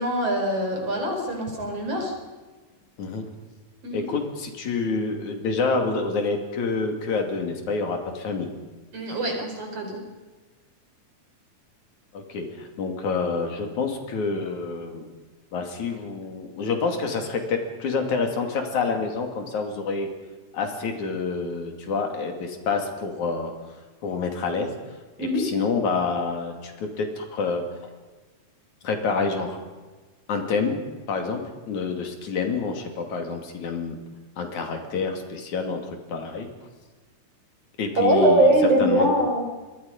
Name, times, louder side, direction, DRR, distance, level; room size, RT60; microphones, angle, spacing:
voice 1, 0.0-2.1 3.8-4.1 8.9-10.0 25.2-25.5 37.9-39.4, right 1 dB, 55° right, 2 dB, 5.7 m, -22 dB
voice 2, 3.9-8.5 12.1-15.1 15.5-20.1 20.5-23.5 24.0-24.7 25.2-27.7 28.8-29.6 30.3-34.0 34.4-36.5 37.8-38.5 38.8-39.1, left 4 dB, 80° left, 4 dB, 4.0 m, -28 dB
26.5 x 22.5 x 5.4 m, 1.3 s
omnidirectional pair, 3.3 m